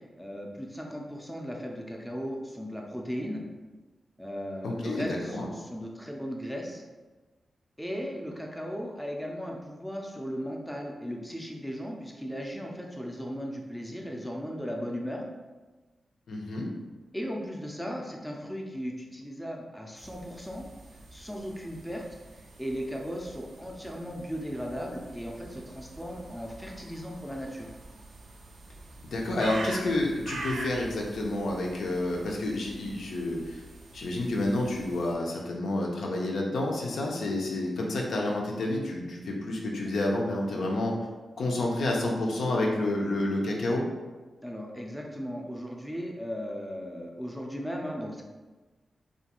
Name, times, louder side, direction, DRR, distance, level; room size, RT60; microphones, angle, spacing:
voice 1, 0.2-3.4 4.2-6.8 7.8-15.2 17.1-20.6 21.1-22.0 22.3-27.7 44.4-48.2, equal, ahead, -1 dB, 0.4 m, -37 dB
voice 2, 4.6-5.5 16.3-16.7 29.1-33.6 33.9-40.9 41.4-43.8, left 1 dB, 85° left, -1 dB, 0.4 m, -29 dB
sound 1, 20.0-35.1, right 2 dB, 90° right, 0.4 m, -45 dB
2.4 x 2.2 x 2.8 m, 1.2 s
wide cardioid pair, 90°, 0 cm